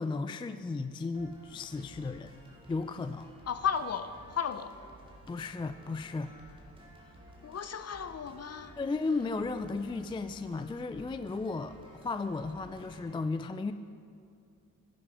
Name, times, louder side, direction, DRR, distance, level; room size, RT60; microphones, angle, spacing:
voice 1, 0.0-2.3 2.7-3.3 5.3-6.3 8.8-13.7, left 3 dB, 15° left, 11 dB, 0.3 m, -35 dB
sound 1, 1.1-13.1, right 1 dB, 15° right, 2.4 m, -54 dB
voice 2, 3.5-4.7 7.4-8.7, left 7 dB, 45° left, 11 dB, 0.7 m, -34 dB
11.0 x 9.7 x 4.9 m, 2.4 s
cardioid pair, 75°, 36 cm